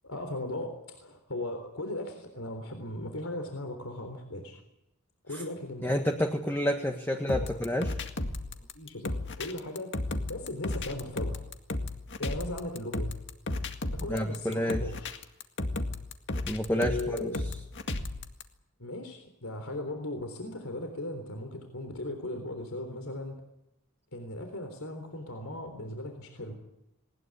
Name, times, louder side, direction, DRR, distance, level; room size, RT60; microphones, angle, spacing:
voice 1, 0.0-4.6 5.2-5.9 7.3-7.6 8.7-11.4 12.2-13.1 13.9-15.2 16.7-17.4 18.8-23.4 24.1-26.6, left 1 dB, 70° left, 5 dB, 3.8 m, -38 dB
voice 2, 5.8-7.9 14.1-14.8 16.5-17.3, equal, 10° left, 3 dB, 1.5 m, -29 dB
sound 1, 7.3-18.4, left 2 dB, 55° left, 2.0 m, -34 dB
20.0 x 20.0 x 9.8 m, 0.86 s
head